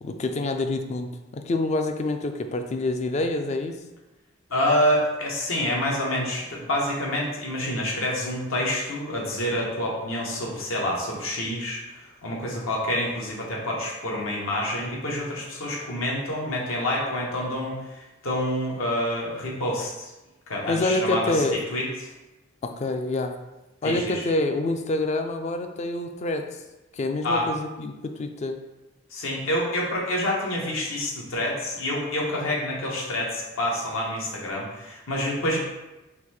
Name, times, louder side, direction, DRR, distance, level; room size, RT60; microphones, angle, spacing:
voice 1, 0.0-3.7 20.7-21.6 22.6-23.3 23.8-26.6 26.9-28.6, left 2 dB, 35° left, 6 dB, 0.3 m, -27 dB
voice 2, 4.5-11.8 12.2-20.1 20.5-21.8 23.8-24.3 27.2-27.5 29.1-35.6, left 1 dB, 80° left, -3 dB, 1.1 m, -27 dB
4.0 x 2.6 x 4.2 m, 1.0 s
head